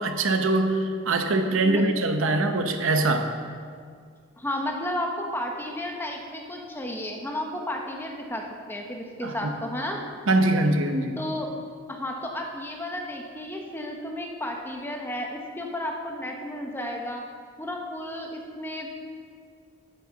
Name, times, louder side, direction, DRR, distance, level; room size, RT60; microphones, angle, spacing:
voice 1, 0.0-3.3 9.2-9.5 10.3-11.2, right 2 dB, 70° right, 6 dB, 0.8 m, -23 dB
voice 2, 4.4-10.0 11.2-11.5 11.9-17.2 17.6-19.0, left 1 dB, 10° left, 1 dB, 0.9 m, -33 dB
9.2 x 7.7 x 6.0 m, 2.1 s
head